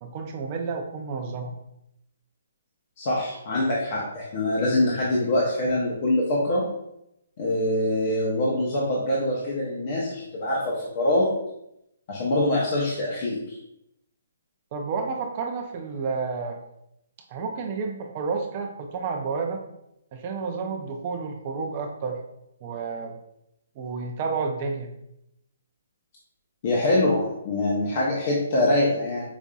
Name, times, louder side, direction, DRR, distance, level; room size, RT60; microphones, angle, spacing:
voice 1, 0.0-1.6 14.7-16.6 17.3-19.6 20.1-22.2 22.6-23.2 23.8-24.9, right 4 dB, 30° right, 3 dB, 0.5 m, -30 dB
voice 2, 3.0-6.6 7.4-11.3 12.1-13.6 26.6-29.2, left 1 dB, 40° left, -5 dB, 0.7 m, -24 dB
5.0 x 2.6 x 2.3 m, 0.81 s
hypercardioid pair, 160°, 0 cm